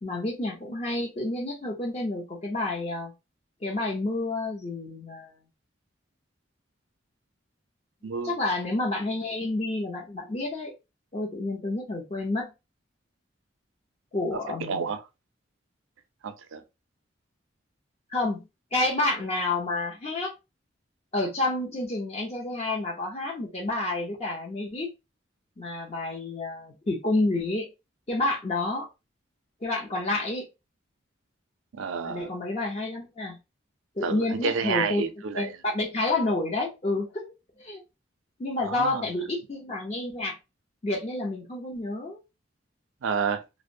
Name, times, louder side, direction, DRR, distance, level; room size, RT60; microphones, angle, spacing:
voice 1, 0.0-3.1 3.6-5.3 8.0-10.7 11.1-12.5 14.1-14.9 18.1-18.4 18.7-20.3 21.1-24.9 25.6-27.7 28.1-28.9 29.6-30.5 32.0-33.4 34.0-35.0 35.3-37.8 38.4-40.4 40.8-42.2, left 2 dB, 30° left, 0.5 m, -29 dB
voice 2, 8.0-8.4 14.3-15.0 16.2-16.6 31.7-32.3 34.0-35.6 38.6-39.0 43.0-43.4, right 5 dB, 85° right, 0.4 m, -30 dB
2.5 x 2.0 x 2.6 m
head